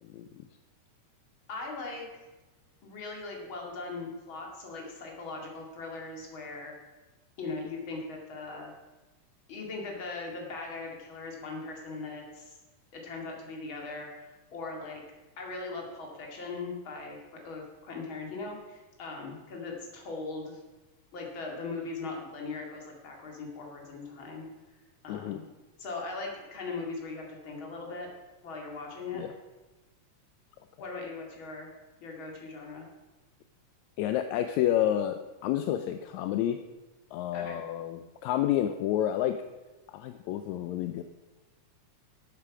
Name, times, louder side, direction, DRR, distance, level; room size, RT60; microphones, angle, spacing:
voice 1, 1.5-2.1 2.8-6.7 7.4-8.8 9.5-12.6 12.9-15.0 15.4-20.6 21.1-24.5 25.0-25.4 25.8-28.1 28.4-29.4 30.8-31.7 32.0-32.9 37.3-37.6, left 3 dB, 45° left, 0 dB, 2.9 m, -39 dB
voice 2, 25.1-25.4 29.1-29.3 34.0-36.6 37.1-39.4 39.9-41.0, left 11 dB, 80° left, 8 dB, 1.9 m, -29 dB
13.5 x 8.3 x 4.8 m, 1.1 s
omnidirectional pair, 3.4 m